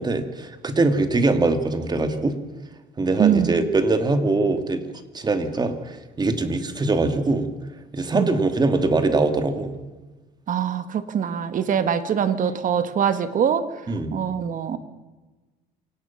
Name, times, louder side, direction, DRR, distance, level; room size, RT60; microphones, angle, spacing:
voice 1, 0.0-2.4 3.0-4.8 5.1-7.5 7.9-9.7 13.9-14.1, right 3 dB, 25° right, 7 dB, 2.4 m, -22 dB
voice 2, 3.2-3.7 8.1-8.4 10.5-14.8, right 8 dB, 50° right, 10 dB, 1.9 m, -23 dB
27.5 x 18.0 x 6.0 m, 1.2 s
cardioid pair, 110°, 17 cm